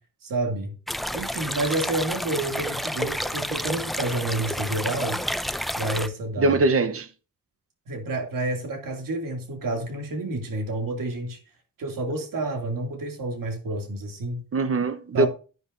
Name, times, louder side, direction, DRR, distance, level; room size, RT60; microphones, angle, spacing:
voice 1, 0.2-0.8 1.1-5.2 5.8-6.6 7.9-11.4 11.8-14.4 15.1-15.3, right 2 dB, 70° right, 2.6 m, -29 dB
sound 1, 0.9-6.1, equal, ahead, 0.6 m, -30 dB
voice 2, 6.4-7.1 14.5-15.3, right 2 dB, 40° right, 1.0 m, -22 dB
11.0 x 9.5 x 2.6 m
wide cardioid pair, 120°, 34 cm